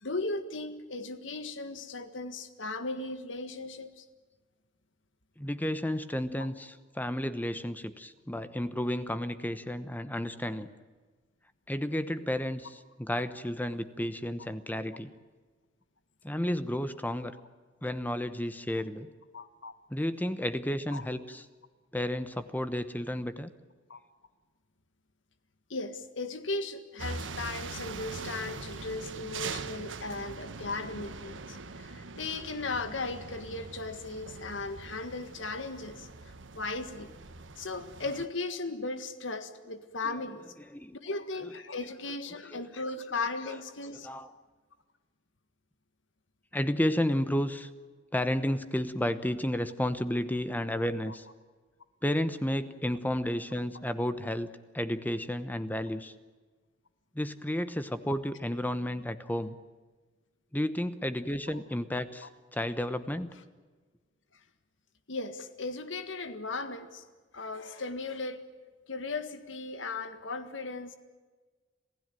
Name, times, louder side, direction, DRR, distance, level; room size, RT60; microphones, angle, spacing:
voice 1, 0.0-4.0 6.4-6.5 19.3-19.7 20.9-21.0 23.9-24.0 25.7-36.1 36.5-37.1 37.6-40.4 41.0-44.1 65.1-67.0 67.3-68.4 68.9-71.0, left 3 dB, 85° left, 10 dB, 1.7 m, -37 dB
voice 2, 5.4-10.7 11.7-15.1 16.2-17.4 17.8-19.1 19.9-21.5 21.9-23.5 40.0-40.1 40.6-41.0 42.5-42.7 43.9-44.3 46.5-47.7 48.1-51.3 52.0-54.5 54.7-56.1 57.1-59.6 60.5-63.3, left 1 dB, 10° left, 12 dB, 1.0 m, -32 dB
sound 1, 27.0-38.3, right 4 dB, 80° right, 1.3 m, -42 dB
27.5 x 16.0 x 9.2 m, 1.4 s
head